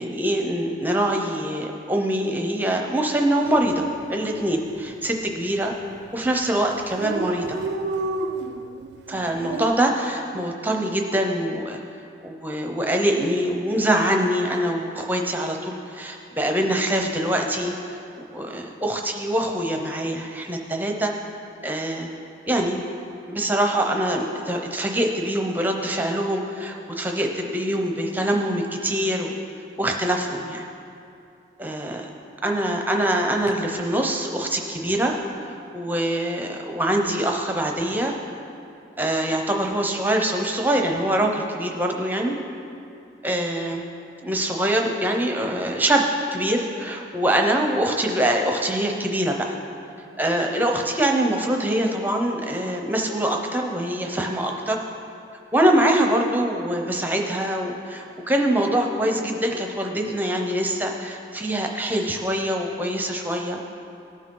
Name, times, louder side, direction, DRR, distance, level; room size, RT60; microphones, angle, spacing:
voice 1, 0.0-5.7 6.1-7.6 9.1-11.8 12.2-17.7 18.2-21.1 21.6-22.1 22.5-22.8 23.3-29.4 29.8-30.6 31.6-32.1 32.4-35.2 35.7-38.1 39.0-42.4 43.2-43.8 44.2-49.6 50.2-54.8 55.5-63.6, right 1 dB, 10° right, 2 dB, 0.7 m, -24 dB
Dog, 3.5-3.7 4.0-4.1 4.4-5.1 5.7-5.9 6.2-6.3 6.5-6.6 6.8-9.7, right 2 dB, 75° right, 0.5 m, -30 dB
18.5 x 6.2 x 3.8 m, 2.7 s
head